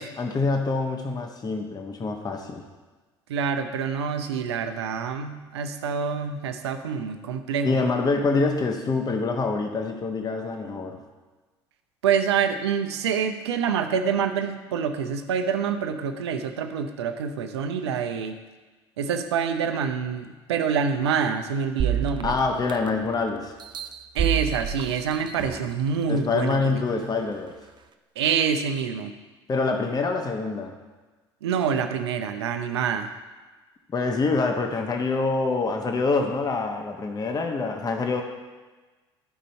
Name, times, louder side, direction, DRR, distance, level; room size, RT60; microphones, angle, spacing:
voice 1, 0.2-2.6 7.6-11.0 22.2-23.5 26.1-27.5 29.5-30.7 33.9-38.2, left 3 dB, 25° left, 4 dB, 1.0 m, -25 dB
voice 2, 3.3-7.8 12.0-18.4 19.0-22.3 24.1-27.1 28.2-29.1 31.4-33.1, right 7 dB, 70° right, 7 dB, 0.7 m, -26 dB
sound 1, 21.8-23.1 23.6-25.7 26.3-26.4, right 8 dB, 30° right, 0.6 m, -29 dB
12.5 x 5.2 x 4.3 m, 1.3 s
figure-of-eight pair, 60°, 14 cm